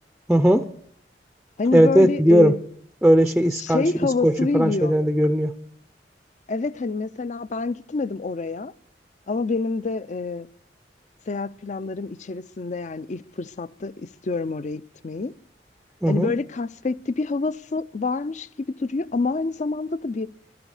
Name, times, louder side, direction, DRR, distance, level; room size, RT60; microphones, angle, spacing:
voice 1, 0.3-0.7 1.7-2.5 3.0-3.8 4.2-5.5 16.0-16.3, equal, 5° right, 0.5 m, -18 dB
voice 2, 1.6-2.6 3.6-4.9 6.5-8.7 9.3-10.5 11.3-15.3 16.1-20.3, left 3 dB, 45° left, 0.5 m, -27 dB
19.0 x 12.5 x 4.9 m
head